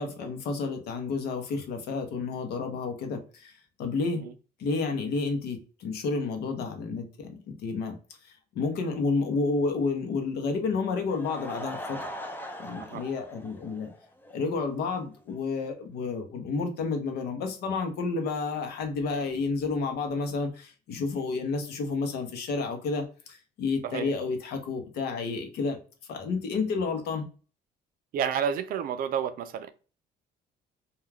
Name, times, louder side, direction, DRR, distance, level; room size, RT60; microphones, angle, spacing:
voice 1, 0.0-3.5 3.8-4.2 4.6-8.0 8.5-12.1 12.6-13.9 14.3-25.8 26.1-27.3, left 4 dB, 70° left, 0.7 m, -30 dB
Laughter / Crowd, 11.1-14.4 14.7-14.8 15.3-15.4 15.6-15.7, equal, 10° left, 0.4 m, -40 dB
voice 2, 28.1-29.7, right 8 dB, 60° right, 0.4 m, -30 dB
2.3 x 2.3 x 3.2 m
cardioid pair, 110°, 17 cm